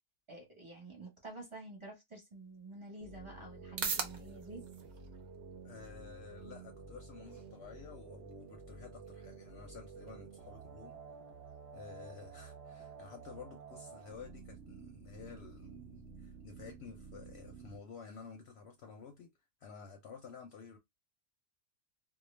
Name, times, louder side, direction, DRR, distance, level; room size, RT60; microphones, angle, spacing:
voice 1, 0.3-4.6, right 2 dB, 25° right, 0.9 m, -49 dB
sound 1, 2.3-19.3, right 5 dB, 80° right, 0.4 m, -49 dB
sound 2, 3.0-17.8, right 5 dB, 60° right, 0.8 m, -51 dB
voice 2, 5.6-11.0 11.7-19.3 19.6-20.8, left 5 dB, 65° left, 0.7 m, -52 dB
2.3 x 2.1 x 3.1 m
omnidirectional pair, 1.4 m